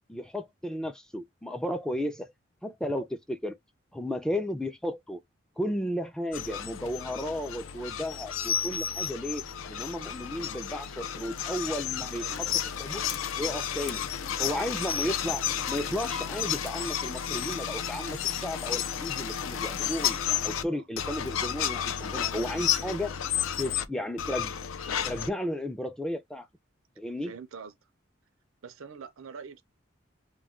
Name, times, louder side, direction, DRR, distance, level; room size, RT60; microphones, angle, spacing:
voice 1, 0.1-2.3 2.6-3.6 3.9-5.2 5.6-12.5 12.8-13.0 13.4-14.0 14.4-20.2 20.4-23.1 23.6-24.5 25.0-26.5 27.0-27.3, left 1 dB, 5° left, 0.3 m, -34 dB
sound 1, 6.3-20.6 21.0-23.9 24.2-25.3, left 9 dB, 80° left, 0.4 m, -32 dB
voice 2, 12.1-12.4 20.7-20.9 27.2-27.7 28.6-29.6, right 5 dB, 90° right, 0.5 m, -44 dB
sound 2, 14.5-15.0 15.3-16.2 16.5-18.1 18.4-18.7 18.9-19.0 19.3-19.4 19.6-19.8 20.1-20.3, left 3 dB, 30° left, 0.7 m, -46 dB
2.3 x 2.2 x 3.5 m
head